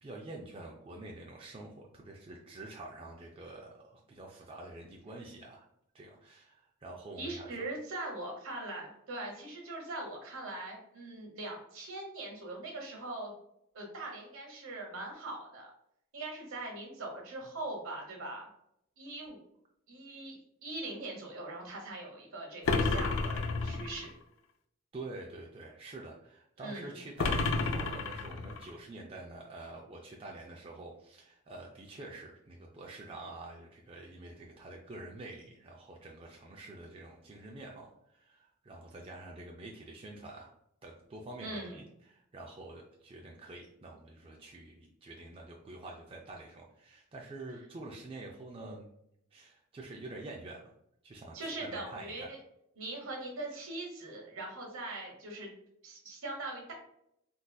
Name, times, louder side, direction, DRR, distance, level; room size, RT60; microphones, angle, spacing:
voice 1, 0.0-5.6 5.9-7.7 24.9-40.5 40.8-48.9 49.3-50.7 51.0-52.3, right 2 dB, 25° right, -1 dB, 0.3 m, -47 dB
voice 2, 7.2-13.3 13.7-15.7 16.1-18.5 19.0-19.4 19.9-24.1 26.6-27.0 41.4-41.8 51.3-52.4 52.8-55.5 55.8-56.7, right 2 dB, 75° right, 0 dB, 1.1 m, -41 dB
sound 1, 22.6-24.1 27.2-28.7, left 3 dB, 65° left, 0.3 m, -31 dB
3.9 x 2.5 x 2.3 m, 0.75 s
head